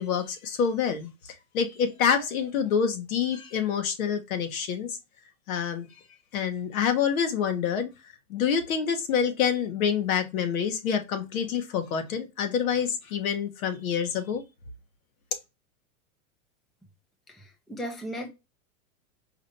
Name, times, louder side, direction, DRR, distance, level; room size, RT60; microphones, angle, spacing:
voice 1, 0.0-5.0 5.5-5.9 6.3-7.9 8.3-14.4, left 7 dB, 75° left, 1.4 m, -27 dB
voice 2, 17.3-18.3, equal, ahead, 0.4 m, -36 dB
4.9 x 3.3 x 2.7 m
supercardioid pair, 135°, 42 cm